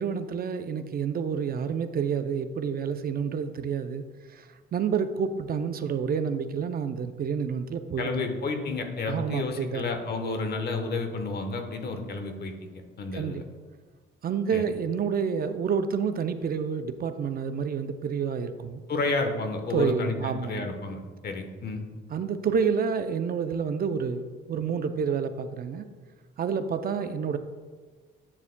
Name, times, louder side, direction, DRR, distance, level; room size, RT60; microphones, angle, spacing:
voice 1, 0.0-4.0 4.3-8.3 9.1-9.9 13.1-13.4 14.2-18.8 19.7-20.7 22.1-25.9 26.4-27.4, right 6 dB, 50° right, 10 dB, 0.5 m, -29 dB
voice 2, 8.0-13.4 14.5-14.6 18.9-21.8, left 3 dB, 55° left, 5 dB, 1.1 m, -31 dB
9.7 x 6.9 x 2.2 m, 1.5 s
cardioid pair, 90°, 20 cm